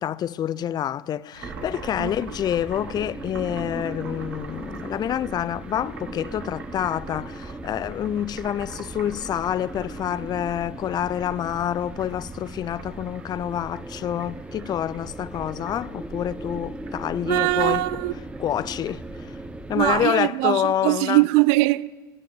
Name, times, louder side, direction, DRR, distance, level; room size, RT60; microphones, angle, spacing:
voice 1, 0.0-17.8 18.4-19.4 19.7-21.2, left 10 dB, 40° left, 0.4 m, -27 dB
sound 1, 1.3-20.4, right 6 dB, 85° right, 1.5 m, -47 dB
sound 2, 1.4-20.1, right 2 dB, 10° right, 1.1 m, -38 dB
voice 2, 17.3-18.1 19.7-21.9, right 22 dB, 60° right, 0.4 m, -21 dB
16.5 x 9.2 x 9.1 m
hypercardioid pair, 70°, 11 cm